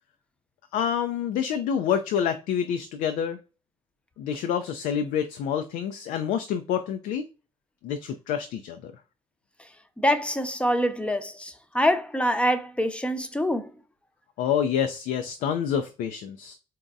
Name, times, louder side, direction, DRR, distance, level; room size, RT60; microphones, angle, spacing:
voice 1, 0.7-3.4 4.2-7.3 7.8-8.9 14.4-16.5, left 8 dB, 70° left, 0.4 m, -27 dB
voice 2, 10.0-13.7, equal, 10° left, 0.6 m, -25 dB
4.0 x 2.2 x 2.5 m
hypercardioid pair, 55°, 14 cm